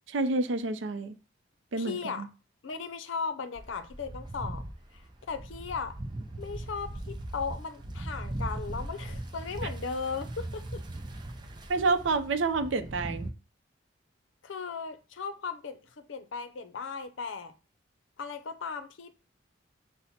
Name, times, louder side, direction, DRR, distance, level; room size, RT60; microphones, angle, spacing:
voice 1, 0.1-1.1 1.7-2.3 11.7-13.3, right 3 dB, 80° right, 0.5 m, -28 dB
voice 2, 1.8-2.3 2.6-4.6 4.9-6.0 6.4-10.8 14.4-17.5 18.2-19.2, left 5 dB, 85° left, 0.5 m, -37 dB
sound 1, 3.6-13.3, right 1 dB, 25° right, 0.5 m, -39 dB
5.7 x 2.1 x 4.1 m
head